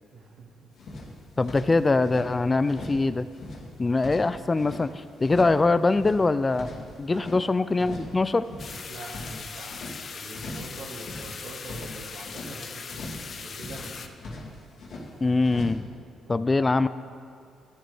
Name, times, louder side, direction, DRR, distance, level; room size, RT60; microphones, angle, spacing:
voice 1, 0.1-0.5 7.1-7.4 8.9-12.8 13.2-14.3 16.3-16.4, right 2 dB, 70° right, -1 dB, 2.0 m, -44 dB
sound 1, 0.8-2.3 2.6-3.1 3.3-4.8 5.2-5.6 5.9-7.4 7.7-8.2 8.4-9.9 10.3-10.7 11.0-12.5 12.9-13.3 13.5-15.1 15.4-15.7, left 2 dB, 70° left, 2.6 m, -40 dB
voice 2, 1.4-3.3 3.8-6.7 7.0-8.5 15.2-15.8 16.3-16.9, left 3 dB, 25° left, 13 dB, 0.3 m, -23 dB
sound 2, 8.6-14.1, left 5 dB, 50° left, 0.7 m, -40 dB
12.5 x 11.5 x 3.5 m, 2.3 s
cardioid pair, 90°, 0 cm